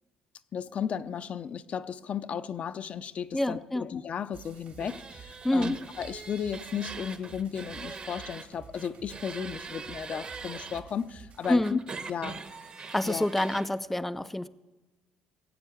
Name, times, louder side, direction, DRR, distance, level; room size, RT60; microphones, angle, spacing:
voice 1, 0.5-11.8 12.1-12.4 13.0-13.3, left 8 dB, 50° left, 0.6 m, -34 dB
voice 2, 3.3-3.9 5.4-5.8 11.5-11.8 12.9-14.5, left 1 dB, 5° left, 0.4 m, -27 dB
sound 1, 4.3-11.6, right 6 dB, 55° right, 1.9 m, -52 dB
sound 2, 4.8-8.5 8.7-10.8 11.4-13.7, right 5 dB, 35° right, 1.2 m, -42 dB
18.5 x 8.0 x 8.5 m
cardioid pair, 100°, 3 cm